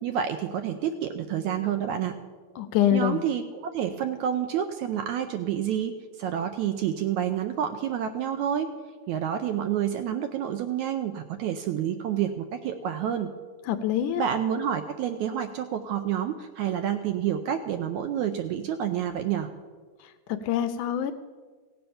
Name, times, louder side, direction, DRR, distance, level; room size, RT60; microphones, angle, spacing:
voice 1, 0.0-2.1 2.9-8.7 9.1-13.3 14.2-19.5, right 9 dB, 75° right, 7 dB, 1.8 m, -29 dB
voice 2, 2.6-3.2 13.7-14.2 20.0-21.1, left 11 dB, 80° left, 10 dB, 1.9 m, -25 dB
17.0 x 7.8 x 7.0 m, 1.5 s
omnidirectional pair, 3.9 m